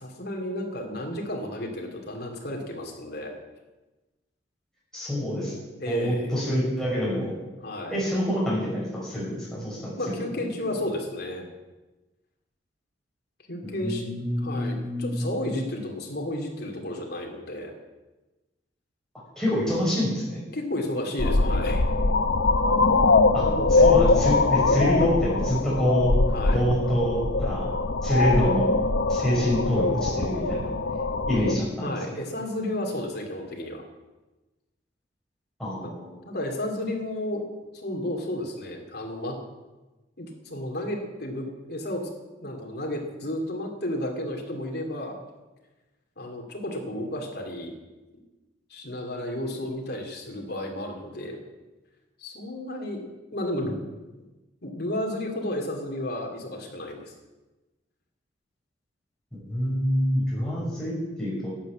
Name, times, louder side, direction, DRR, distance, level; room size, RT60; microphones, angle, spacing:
voice 1, 0.0-3.3 5.8-6.3 7.6-8.0 10.0-11.5 13.5-14.0 14.4-17.7 20.5-21.8 23.4-24.0 26.3-26.7 31.8-33.8 35.8-35.9 36.3-37.5 37.7-39.4 40.2-42.1 42.4-45.2 46.2-47.7 48.7-51.4 52.2-53.0 53.3-53.7 54.6-57.1, left 1 dB, 55° left, 1 dB, 2.7 m, -32 dB
voice 2, 4.9-5.5 5.9-7.3 7.9-10.3 13.6-15.3 19.4-20.4 23.3-23.4 23.7-26.1 26.5-27.7 28.0-28.7 29.1-30.6 31.3-31.9 35.6-36.2 59.5-61.5, equal, 5° left, -7 dB, 5.8 m, -26 dB
sound 1, 21.2-31.6, left 3 dB, 75° left, 0.8 m, -22 dB
12.0 x 8.3 x 8.4 m, 1.1 s
head